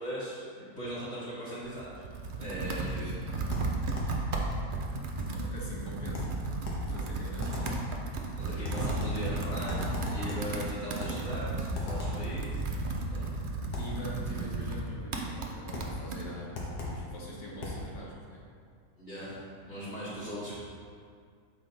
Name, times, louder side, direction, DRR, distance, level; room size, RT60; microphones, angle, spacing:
voice 1, 0.0-2.0 2.4-3.2 5.3-5.4 7.5-7.7 8.4-12.8 13.1-13.3 19.0-20.6, equal, 45° left, -12 dB, 1.9 m, -39 dB
Computer keyboard, 1.6-16.2, right 3 dB, 70° right, 0.5 m, -34 dB
voice 2, 2.8-3.7 5.3-6.4 6.9-7.7 13.2-13.4 13.8-18.4 19.9-20.2, equal, 65° left, -4 dB, 1.5 m, -43 dB
sound 1, 3.5-4.2 6.1-6.9 7.4-7.9 8.6-9.3 9.7-10.6 11.0-11.3 11.7-12.3 13.7-14.0 15.7-16.0 16.5-17.1 17.6-17.9, left 3 dB, 80° left, 1.6 m, -37 dB
6.2 x 4.4 x 3.9 m, 2.2 s
omnidirectional pair, 1.7 m